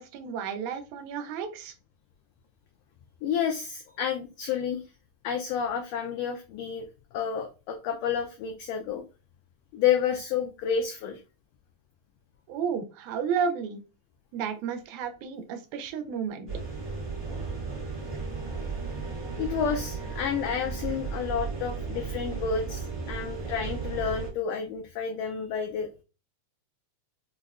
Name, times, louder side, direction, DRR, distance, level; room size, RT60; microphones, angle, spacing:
voice 1, 0.0-1.7 12.5-13.8 14.3-16.5, right 6 dB, 80° right, 7 dB, 1.9 m, -32 dB
voice 2, 3.2-4.8 5.2-6.8 7.1-9.0 9.7-11.2 19.4-26.0, left 7 dB, 85° left, 4 dB, 1.5 m, -30 dB
sound 1, 16.5-24.3, right 4 dB, 30° right, 0.7 m, -35 dB
5.1 x 2.1 x 2.3 m, 0.31 s
omnidirectional pair, 3.4 m